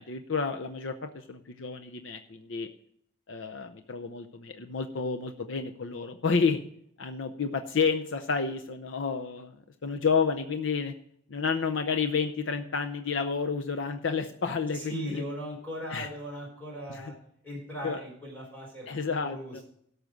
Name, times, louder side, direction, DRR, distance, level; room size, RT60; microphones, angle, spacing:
voice 1, 0.0-2.7 3.3-6.6 7.0-10.9 11.3-15.2 15.9-16.1 17.8-18.0 18.9-19.6, left 5 dB, 80° left, 6 dB, 0.7 m, -30 dB
voice 2, 14.7-17.1 17.4-19.6, equal, 10° left, -3 dB, 4.3 m, -39 dB
12.0 x 6.5 x 6.5 m, 0.67 s
head